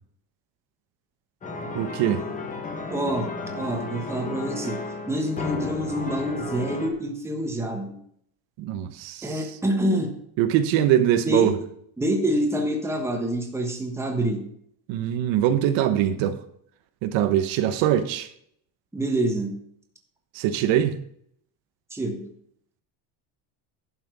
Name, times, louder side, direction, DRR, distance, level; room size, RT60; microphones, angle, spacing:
sound 1, 1.4-6.9, left 3 dB, 15° left, 1.2 m, -33 dB
voice 1, 1.7-2.2 8.6-9.4 10.4-11.5 14.9-16.4 17.0-18.3 20.3-21.0, right 11 dB, 65° right, 10 dB, 1.1 m, -22 dB
voice 2, 2.9-8.0 9.2-10.1 11.0-11.6 12.0-14.5 18.9-19.6 21.9-22.3, right 1 dB, 5° right, 3 dB, 1.3 m, -27 dB
11.5 x 5.9 x 6.0 m, 0.68 s
cardioid pair, 175°, 48 cm